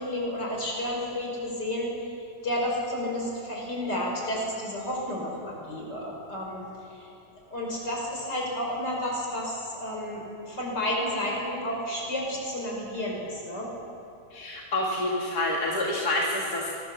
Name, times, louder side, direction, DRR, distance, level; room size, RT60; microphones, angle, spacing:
voice 1, 0.0-1.9 2.4-6.6 6.9-7.1 7.5-13.7, left 1 dB, 80° left, -2 dB, 6.1 m, -31 dB
voice 2, 14.3-16.7, left 1 dB, 65° left, -3 dB, 2.5 m, -28 dB
25.0 x 19.0 x 7.2 m, 2.7 s
omnidirectional pair, 1.8 m